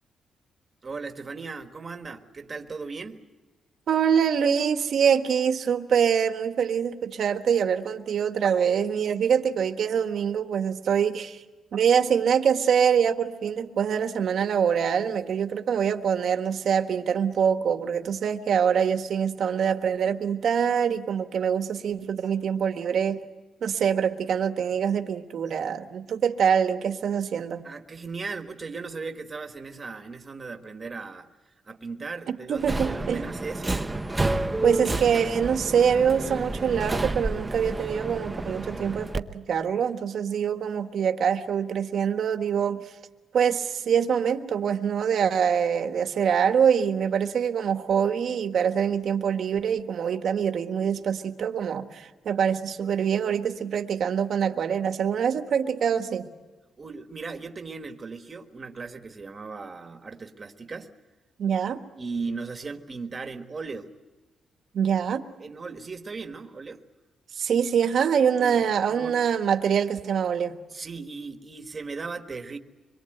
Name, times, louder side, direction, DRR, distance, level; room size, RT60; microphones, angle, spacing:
voice 1, 0.8-3.2 27.6-31.3 31.6-33.8 56.8-60.9 62.0-63.9 65.4-66.8 68.4-68.6 68.9-69.1 70.7-72.6, right 4 dB, 25° right, 6 dB, 1.5 m, -37 dB
voice 2, 3.9-11.4 11.7-23.2 23.6-27.6 32.3-33.2 34.6-42.9 43.3-56.3 61.4-61.8 64.7-65.2 67.4-70.5, right 7 dB, 60° right, 7 dB, 1.4 m, -24 dB
Subway metro underground, 32.6-39.2, right 2 dB, 10° right, 0.8 m, -30 dB
26.0 x 22.5 x 7.9 m, 1.2 s
wide cardioid pair, 155°, 0 cm